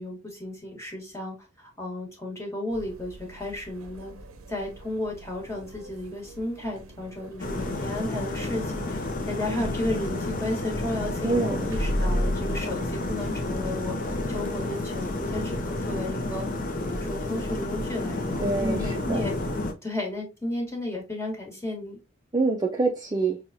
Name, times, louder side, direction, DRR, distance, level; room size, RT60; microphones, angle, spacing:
voice 1, 0.0-4.1 4.5-19.3 19.8-22.0, left 1 dB, 15° left, 1.5 m, -33 dB
sound 1, 2.7-19.4, equal, 80° right, 0.6 m, -38 dB
sound 2, 7.4-19.7, left 2 dB, 40° left, 0.6 m, -31 dB
voice 2, 11.2-11.7 18.4-19.2 22.3-23.4, right 3 dB, 20° right, 0.4 m, -26 dB
5.7 x 2.3 x 2.6 m
head